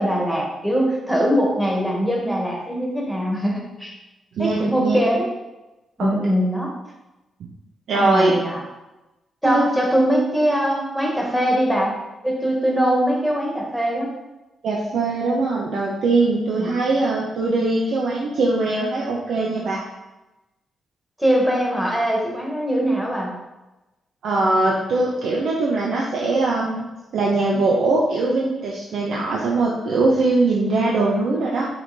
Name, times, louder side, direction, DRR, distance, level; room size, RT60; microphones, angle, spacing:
voice 1, 0.0-3.9 4.4-5.2 6.0-6.7 7.9-8.6 9.4-11.9 12.2-14.1 16.6-16.7 21.2-23.4, equal, 5° right, -2 dB, 1.6 m, -21 dB
voice 2, 4.3-5.0 6.0-6.1 7.9-8.3 9.4-9.7 14.6-19.8 24.2-26.8 27.1-31.7, right 3 dB, 80° right, -3 dB, 0.9 m, -21 dB
5.7 x 5.1 x 4.1 m, 1.0 s
cardioid pair, 130°, 0 cm